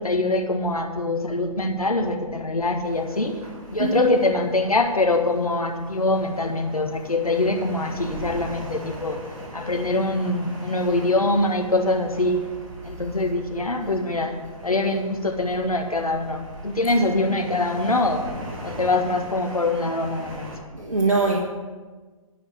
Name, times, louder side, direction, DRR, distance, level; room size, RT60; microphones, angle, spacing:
voice 1, 0.0-3.3 3.7-9.2 9.5-12.4 12.8-14.4 14.6-18.2 18.6-20.5, left 2 dB, 85° left, 4 dB, 1.7 m, -23 dB
sound 1, 2.8-20.6, right 1 dB, 35° right, 3.7 m, -41 dB
voice 2, 3.8-4.1 20.7-21.4, right 3 dB, 80° right, -2 dB, 1.8 m, -22 dB
11.5 x 5.5 x 8.7 m, 1.4 s
figure-of-eight pair, 135°, 18 cm